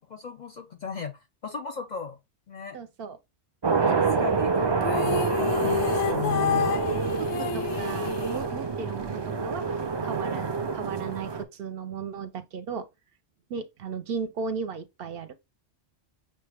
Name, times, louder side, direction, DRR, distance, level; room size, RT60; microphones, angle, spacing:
voice 1, 0.1-1.1 1.4-2.2 2.5-2.8 3.9-5.2 5.5-6.7, left 6 dB, 55° left, 0.5 m, -36 dB
voice 2, 2.7-3.2 3.7-4.0 5.5-6.2 6.7-12.9 13.5-15.3, right 5 dB, 65° right, 0.7 m, -36 dB
sound 1, 3.6-11.4, right 4 dB, 45° right, 0.3 m, -27 dB
sound 2, 4.8-9.1, left 9 dB, 90° left, 0.9 m, -30 dB
5.9 x 2.2 x 3.2 m
omnidirectional pair, 1.2 m